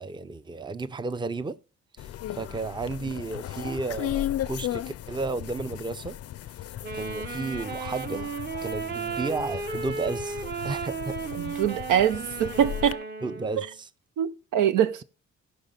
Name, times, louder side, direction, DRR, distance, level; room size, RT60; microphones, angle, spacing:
voice 1, 0.0-1.6 2.0-2.1 2.3-6.2 6.9-8.3 8.6-11.2 13.2-13.9, right 3 dB, 15° right, 0.6 m, -33 dB
sound 1, 2.0-12.9, left 12 dB, 50° left, 0.5 m, -36 dB
Wind instrument woodwind instrument, 6.8-13.7, right 5 dB, 35° right, 1.1 m, -35 dB
voice 2, 11.4-13.0 13.6-13.7 14.2-15.0, right 9 dB, 85° right, 0.8 m, -24 dB
15.0 x 5.4 x 5.2 m
cardioid pair, 90°, 30 cm